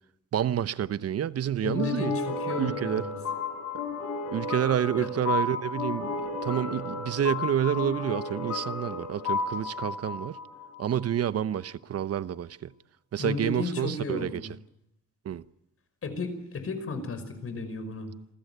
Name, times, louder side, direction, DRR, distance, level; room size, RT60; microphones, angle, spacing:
voice 1, 0.3-2.1 2.6-3.0 3.7-3.8 4.3-10.4 10.8-12.7 13.1-14.4 15.2-15.4, right 10 dB, 55° right, 1.0 m, -29 dB
voice 2, 1.6-3.2 5.0-5.1 13.2-14.5 16.0-18.1, left 3 dB, 50° left, 5.3 m, -33 dB
sound 1, 1.7-11.0, left 4 dB, 70° left, 4.2 m, -33 dB
27.5 x 15.0 x 9.3 m
cardioid pair, 90°, 30 cm